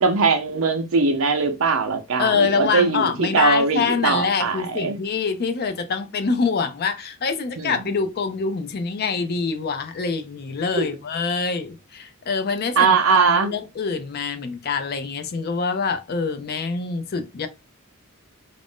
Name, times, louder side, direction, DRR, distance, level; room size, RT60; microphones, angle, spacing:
voice 1, 0.0-5.0 7.6-7.8 10.8-10.9 12.8-13.5, right 4 dB, 70° right, 0.5 m, -20 dB
voice 2, 2.2-17.5, left 5 dB, 50° left, 0.4 m, -25 dB
2.5 x 2.0 x 3.5 m
head